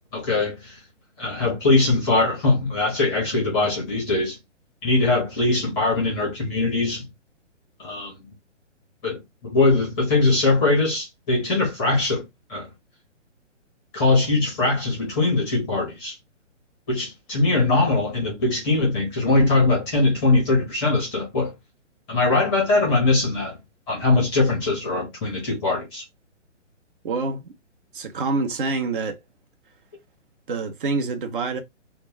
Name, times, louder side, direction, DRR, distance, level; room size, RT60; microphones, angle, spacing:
voice 1, 0.1-0.8 1.2-4.4 4.8-7.1 7.8-8.3 9.0-12.2 12.5-12.7 13.9-16.1 16.9-21.5 22.1-23.5 23.9-26.0, left 3 dB, 15° left, 0.7 m, -21 dB
voice 2, 27.0-27.5 27.9-29.2 30.5-31.6, right 3 dB, 45° right, 0.6 m, -26 dB
2.2 x 2.2 x 3.4 m
hypercardioid pair, 150°, 37 cm